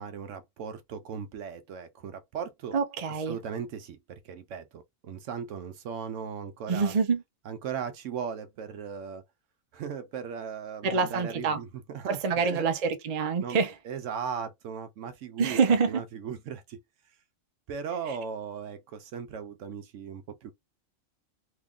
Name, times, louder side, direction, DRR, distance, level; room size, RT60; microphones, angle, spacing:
voice 1, 0.0-2.8 3.3-6.9 7.5-9.2 9.7-12.6 13.4-13.6 13.8-16.8 17.7-20.5, right 7 dB, 70° right, 0.9 m, -37 dB
voice 2, 2.7-3.4 6.7-7.2 10.8-11.6 12.1-13.7 15.4-16.0 18.1-18.2, right 5 dB, 45° right, 0.5 m, -26 dB
3.0 x 2.3 x 3.5 m
omnidirectional pair, 1.4 m